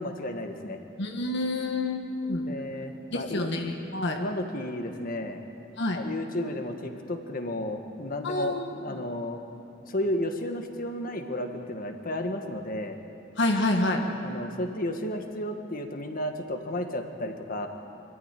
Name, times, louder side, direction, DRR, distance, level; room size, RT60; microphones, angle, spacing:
voice 1, 0.0-0.8 2.4-3.5 4.1-5.4 5.9-9.4 9.8-13.0 14.2-17.7, left 1 dB, 50° left, 5 dB, 1.6 m, -33 dB
voice 2, 1.0-2.5 3.1-4.2 5.8-6.0 8.2-8.7 13.4-14.0, left 2 dB, 65° left, 3 dB, 1.6 m, -28 dB
24.0 x 14.5 x 9.1 m, 2.8 s
head